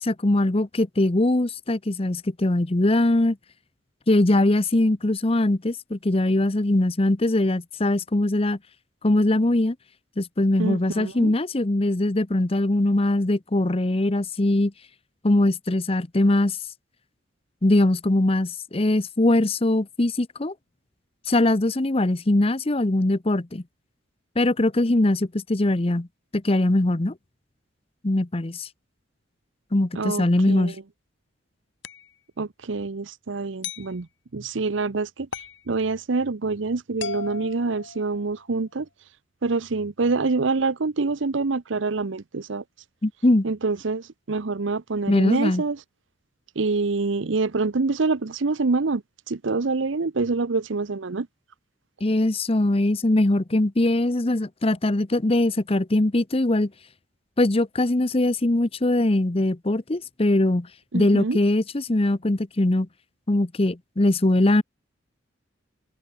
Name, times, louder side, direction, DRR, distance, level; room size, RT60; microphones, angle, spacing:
voice 1, 0.0-3.4 4.1-8.6 9.0-9.8 10.2-14.7 15.2-16.6 17.6-20.5 21.3-23.6 24.4-26.1 26.3-27.1 28.0-28.7 29.7-30.8 43.0-43.5 45.1-45.6 52.0-56.7 57.4-60.7 60.9-62.9 63.3-64.6, left 1 dB, 30° left, 0.8 m, -21 dB
voice 2, 10.6-11.3 30.0-30.7 32.4-34.1 34.3-38.9 39.4-42.6 43.4-45.8 46.6-49.0 49.3-51.3 60.9-61.4, right 3 dB, 80° right, 0.8 m, -26 dB
sound 1, 31.8-32.1 33.6-33.9 35.3-35.6 37.0-38.4, left 6 dB, 70° left, 1.4 m, -36 dB
head